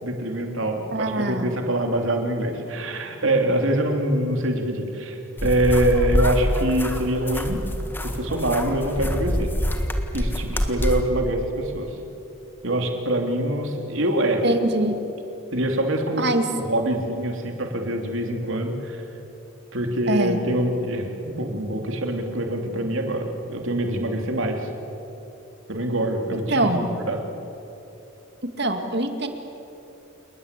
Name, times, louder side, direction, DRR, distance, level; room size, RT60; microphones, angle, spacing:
voice 1, 0.0-7.6 8.0-9.5 10.1-12.0 12.6-14.4 15.5-16.3 16.5-19.0 19.7-24.7 25.7-27.2, right 1 dB, 65° right, 3 dB, 3.1 m, -24 dB
voice 2, 0.9-1.6 14.4-15.0 16.2-16.4 20.1-20.4 26.3-26.9 28.4-29.3, right 1 dB, 50° right, 6 dB, 2.1 m, -23 dB
sound 1, 5.4-11.0, equal, 10° left, 1.6 m, -26 dB
29.0 x 20.0 x 8.4 m, 3.0 s
head